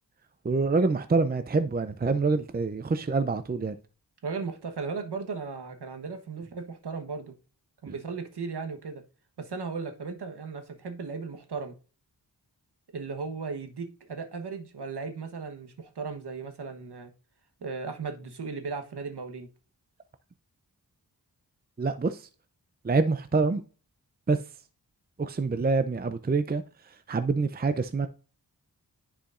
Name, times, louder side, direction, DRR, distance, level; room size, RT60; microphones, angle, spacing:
voice 1, 0.4-3.7 21.8-22.2 22.8-23.6 24.3-24.4 25.2-26.6 27.1-28.1, right 4 dB, 25° right, 0.5 m, -26 dB
voice 2, 4.2-7.3 7.8-9.0 9.4-11.7 12.9-17.1 17.6-19.5, right 4 dB, 75° right, 1.3 m, -36 dB
10.0 x 5.0 x 2.5 m
wide cardioid pair, 70°, 40 cm